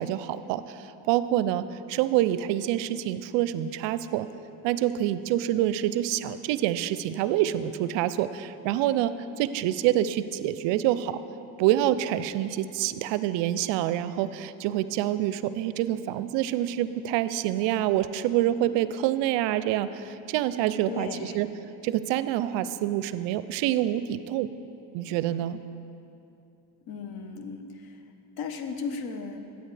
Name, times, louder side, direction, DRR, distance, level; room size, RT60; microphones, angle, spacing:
voice 1, 0.0-4.3 4.6-11.2 11.6-21.5 21.8-24.5 24.9-25.6, right 12 dB, 65° right, 14 dB, 0.5 m, -27 dB
voice 2, 20.9-21.4 26.9-28.0 28.4-29.4, left 5 dB, 50° left, 7 dB, 1.0 m, -35 dB
13.0 x 8.2 x 3.3 m, 2.7 s
hypercardioid pair, 70°, 47 cm